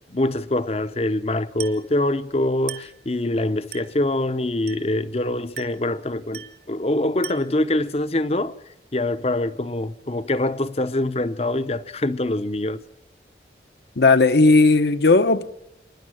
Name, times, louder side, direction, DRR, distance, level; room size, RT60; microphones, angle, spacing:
voice 1, 0.1-8.6 8.9-12.8, left 1 dB, 35° left, 0.8 m, -24 dB
Glass, 1.6-1.9 2.7-3.0 3.7-4.0 4.7-5.0 5.6-5.9 6.3-6.7 7.2-7.6, right 11 dB, 60° right, 2.0 m, -38 dB
voice 2, 14.0-15.5, left 3 dB, 65° left, 1.0 m, -15 dB
27.5 x 10.5 x 9.0 m
head